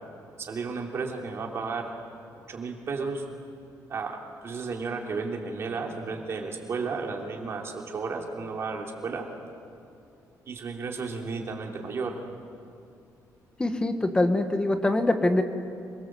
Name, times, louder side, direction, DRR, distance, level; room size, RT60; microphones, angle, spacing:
voice 1, 0.4-1.9 2.5-3.2 3.9-9.3 10.5-12.2, right 4 dB, 40° right, 1 dB, 3.2 m, -33 dB
voice 2, 13.6-15.4, left 2 dB, 15° left, 7 dB, 1.3 m, -24 dB
26.5 x 23.5 x 7.8 m, 2.6 s
cardioid pair, 160°, 7 cm